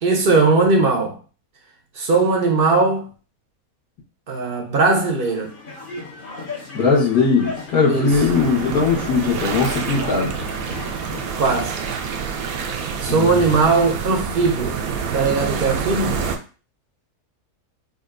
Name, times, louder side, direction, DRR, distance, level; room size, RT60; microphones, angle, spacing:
voice 1, 0.0-1.2 1.9-3.1 4.3-5.6 7.9-8.2 11.4-11.8 13.0-14.8 15.1-16.2, right 3 dB, 50° right, 0.7 m, -19 dB
sound 1, 5.0-11.3, left 3 dB, 40° left, 0.9 m, -35 dB
voice 2, 6.7-10.3 13.1-13.6, left 4 dB, 75° left, 1.7 m, -19 dB
sound 2, 8.1-16.4, right 6 dB, 70° right, 1.0 m, -27 dB
5.1 x 2.4 x 2.5 m
omnidirectional pair, 1.7 m